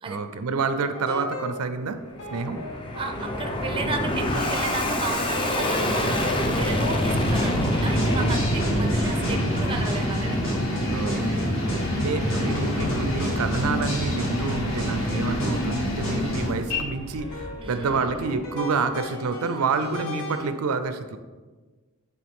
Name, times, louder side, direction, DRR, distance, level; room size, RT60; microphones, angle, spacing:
voice 1, 0.0-2.0 2.3-2.6 10.9-21.2, right 4 dB, 85° right, 9 dB, 0.5 m, -28 dB
sound 1, 0.6-1.8 2.2-9.9 10.3-20.5, left 2 dB, 80° left, 1.0 m, -39 dB
Fixed-wing aircraft airplane, 1.9-18.6, equal, 25° left, 0.6 m, -28 dB
voice 2, 3.0-10.4 17.6-18.1, right 3 dB, 25° right, 6 dB, 0.5 m, -34 dB
sound 2, 7.1-16.8, equal, 60° left, 1.8 m, -28 dB
8.6 x 3.4 x 3.5 m, 1.3 s
head